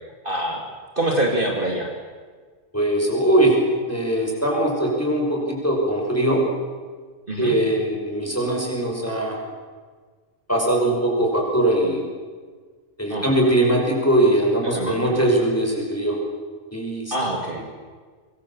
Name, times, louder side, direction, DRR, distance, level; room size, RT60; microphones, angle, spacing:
voice 1, 0.2-0.6 1.0-1.9 7.3-7.5 13.1-13.3 14.7-15.2 17.1-17.6, right 1 dB, 40° right, 0 dB, 2.9 m, -25 dB
voice 2, 2.7-3.5 3.9-6.4 7.4-9.4 10.5-12.0 13.0-16.2 16.7-17.2, right 1 dB, 10° left, -1 dB, 5.5 m, -21 dB
25.5 x 21.0 x 7.3 m, 1.6 s
omnidirectional pair, 1.3 m